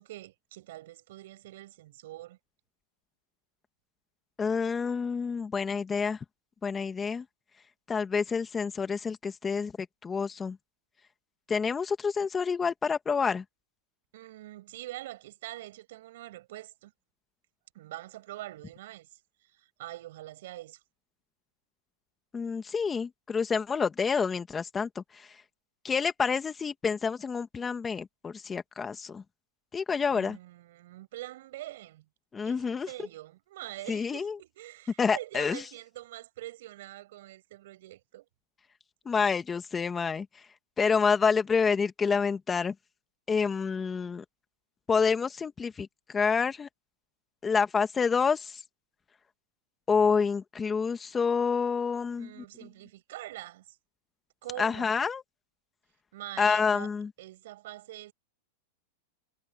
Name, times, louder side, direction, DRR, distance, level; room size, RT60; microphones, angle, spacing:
voice 1, 0.0-2.4 14.1-16.9 17.7-19.1 19.5-20.8 30.1-32.1 32.4-38.3 52.2-53.8 54.4-54.9 56.1-56.9 57.2-58.1, right 15 dB, 70° right, 7.2 m, -44 dB
voice 2, 4.4-6.2 6.6-7.3 7.9-10.6 11.5-13.4 22.3-25.4 25.8-29.2 29.7-30.4 32.3-32.9 33.9-34.4 35.0-35.6 39.1-40.5 40.8-42.7 43.3-44.2 44.9-46.7 47.4-48.6 49.9-52.4 54.6-55.2 56.4-57.1, left 5 dB, 20° left, 1.9 m, -28 dB
hypercardioid pair, 125°, 0 cm